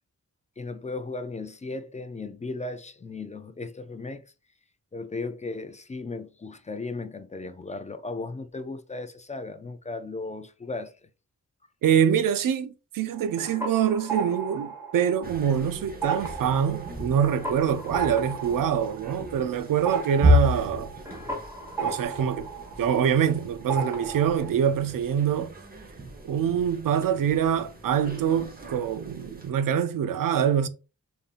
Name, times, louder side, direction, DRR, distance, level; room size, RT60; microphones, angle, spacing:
voice 1, 0.6-4.2 4.9-10.9, left 3 dB, 25° left, 0.3 m, -36 dB
voice 2, 11.8-20.9 21.8-22.5 22.8-25.5 26.2-30.7, right 8 dB, 85° right, 0.5 m, -25 dB
sound 1, 13.1-15.6 15.9-23.4 23.7-24.5, right 4 dB, 10° right, 1.2 m, -35 dB
sound 2, 15.2-29.5, left 1 dB, 30° right, 0.9 m, -32 dB
5.3 x 2.6 x 2.4 m
wide cardioid pair, 115°, 32 cm